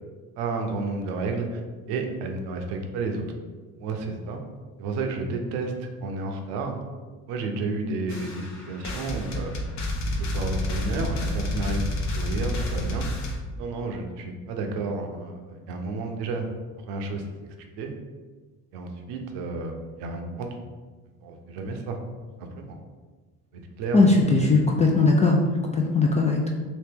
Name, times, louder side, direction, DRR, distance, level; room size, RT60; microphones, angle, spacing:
voice 1, 0.4-1.6 1.9-3.2 3.8-4.4 4.8-6.8 7.3-9.6 10.2-13.1 13.6-16.4 16.9-17.9 18.7-20.5 21.2-22.0 22.4-22.8 23.5-24.5, right 3 dB, 65° right, 4 dB, 0.7 m, -31 dB
sound 1, 8.1-13.3, left 1 dB, 40° left, 0.8 m, -29 dB
voice 2, 23.9-26.5, left 3 dB, 20° left, 0 dB, 0.3 m, -20 dB
2.9 x 2.8 x 3.4 m, 1.4 s
hypercardioid pair, 60°, 44 cm